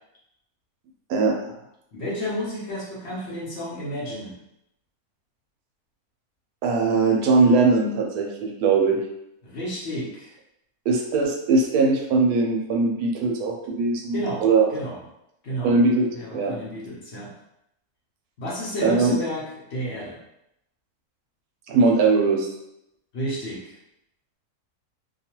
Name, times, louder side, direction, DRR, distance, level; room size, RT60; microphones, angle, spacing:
voice 1, 1.1-1.5 6.6-9.0 10.9-14.7 15.6-16.5 18.8-19.2 21.7-22.5, right 3 dB, 85° right, 1 dB, 1.1 m, -20 dB
voice 2, 1.9-4.3 9.4-10.3 14.1-14.4 14.7-15.0 15.4-15.7 16.1-17.3 18.4-20.2 23.1-23.8, equal, 55° left, -6 dB, 0.9 m, -31 dB
2.7 x 2.3 x 2.9 m, 0.80 s
omnidirectional pair, 1.6 m